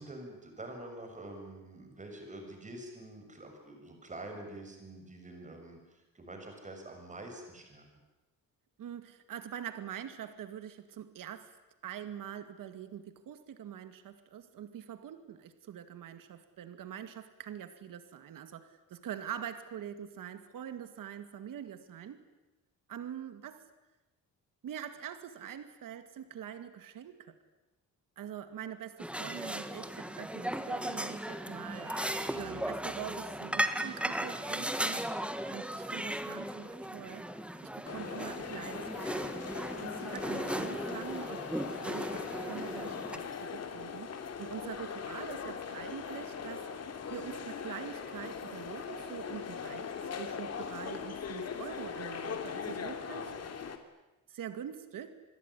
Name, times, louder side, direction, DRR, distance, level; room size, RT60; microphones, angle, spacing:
voice 1, 0.0-7.8, right 1 dB, 20° right, 3 dB, 7.0 m, -46 dB
voice 2, 8.8-11.5 11.8-22.2 22.9-23.6 24.6-27.4 28.2-35.1 35.5-37.3 37.6-39.3 39.8-41.5 41.8-44.1 44.4-46.8 47.1-49.9 50.2-53.3 54.3-55.2, right 9 dB, 70° right, 10 dB, 2.4 m, -44 dB
sound 1, 29.0-43.2, right 1 dB, 5° right, 1.6 m, -37 dB
Vehicle horn car horn honking, 30.7-39.1, right 3 dB, 45° right, 6.1 m, -57 dB
sound 2, 37.9-53.8, left 6 dB, 50° left, 2.7 m, -40 dB
27.0 x 21.5 x 10.0 m, 1.1 s
cardioid pair, 150°, 34 cm